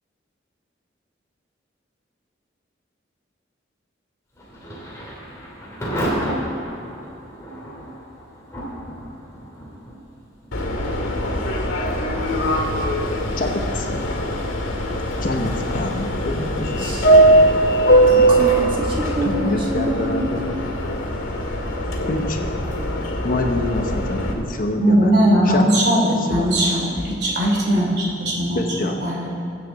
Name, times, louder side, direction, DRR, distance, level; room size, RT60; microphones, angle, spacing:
Thunder / Rain, 4.3-21.1, equal, 15° left, 2.5 m, -35 dB
Subway metro underground, 10.5-24.3, right 1 dB, 90° left, 2.1 m, -20 dB
voice 1, 13.4-14.2 15.2-16.9 19.2-20.5 22.1-22.5 23.2-25.1 25.5-26.0 26.3-26.9 28.5-29.0, left 2 dB, 45° left, 1.0 m, -26 dB
voice 2, 16.8-17.1 18.2-20.6 24.8-25.0, right 1 dB, 25° right, 1.8 m, -27 dB
voice 3, 24.8-29.3, equal, 55° right, 3.0 m, -19 dB
20.5 x 8.5 x 4.1 m
head